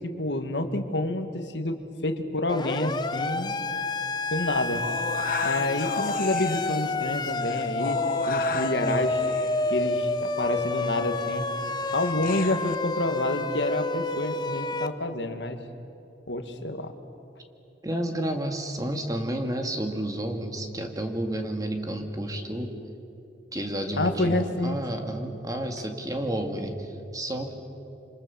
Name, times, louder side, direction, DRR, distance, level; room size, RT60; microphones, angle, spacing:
voice 1, 0.0-3.6 4.3-4.8 5.4-9.2 9.7-11.5 11.9-15.6 16.3-16.9 24.0-24.8, left 2 dB, 80° left, 7 dB, 1.8 m, -28 dB
Siren, 2.5-14.9, left 2 dB, 25° left, 0.8 m, -29 dB
sound 1, 4.7-12.8, left 5 dB, 55° left, 1.1 m, -35 dB
voice 2, 17.8-22.7 23.5-27.5, right 1 dB, 20° right, 4 dB, 2.1 m, -31 dB
27.5 x 26.5 x 7.1 m, 2.9 s
head